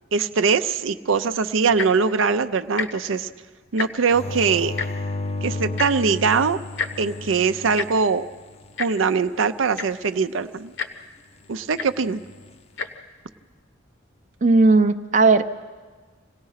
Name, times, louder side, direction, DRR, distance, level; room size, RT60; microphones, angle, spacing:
voice 1, 0.1-3.3 3.7-4.7 5.4-6.6 7.0-8.2 8.8-10.7 11.5-12.2, right 5 dB, 80° right, 10 dB, 0.6 m, -22 dB
Tick-tock, 1.7-2.0 2.7-2.9 3.2-3.3 3.6-4.1 4.8-4.9 5.8-5.9 6.8-6.9 7.8-7.9 8.8-8.9 9.5-9.6 9.7-10.1 10.8-10.9 11.8-11.9 12.7-12.9 13.6-13.7, left 6 dB, 65° left, 1.1 m, -28 dB
sound 1, 4.1-8.7 12.0-12.5, left 2 dB, 30° left, 0.6 m, -33 dB
voice 2, 14.4-15.6, right 3 dB, 40° right, 7 dB, 0.6 m, -17 dB
27.0 x 18.0 x 5.7 m, 1.5 s
head